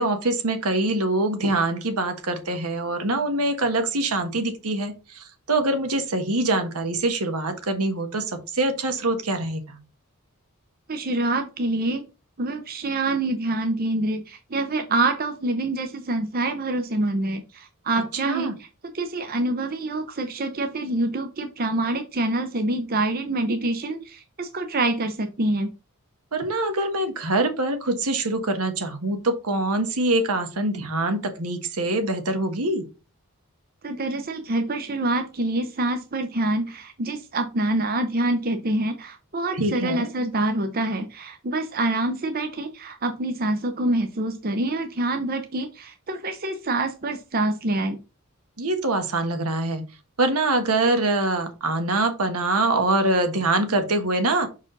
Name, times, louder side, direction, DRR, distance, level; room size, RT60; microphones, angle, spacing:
voice 1, 0.0-9.8 18.1-18.5 26.3-32.8 39.5-40.1 48.6-49.8 50.2-54.5, right 2 dB, 80° right, 7 dB, 1.4 m, -24 dB
voice 2, 10.9-12.0 12.4-18.5 18.9-25.7 33.8-48.0, right 2 dB, 40° right, 7 dB, 0.7 m, -26 dB
5.9 x 4.8 x 3.9 m, 0.30 s
head